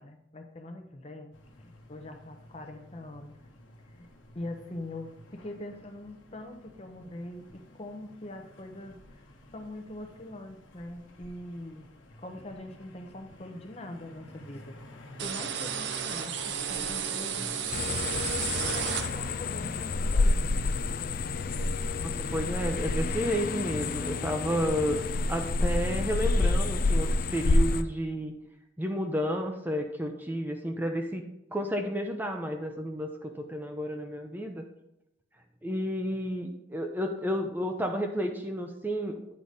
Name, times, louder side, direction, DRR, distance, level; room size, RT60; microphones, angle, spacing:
voice 1, 0.0-3.4 3.8-9.2 9.5-11.9 12.2-18.1 18.6-20.5, left 1 dB, 30° left, 5 dB, 0.8 m, -43 dB
sound 1, 1.3-20.8, left 1 dB, 80° left, 1.2 m, -51 dB
sound 2, 15.2-19.5, right 8 dB, 60° right, 0.7 m, -33 dB
sound 3, 17.7-27.8, left 2 dB, 50° left, 0.4 m, -28 dB
voice 2, 22.0-25.0 25.3-28.3 28.8-31.2 31.5-34.6 35.6-39.4, equal, 10° right, 3 dB, 0.6 m, -31 dB
9.8 x 4.9 x 4.0 m, 0.84 s
head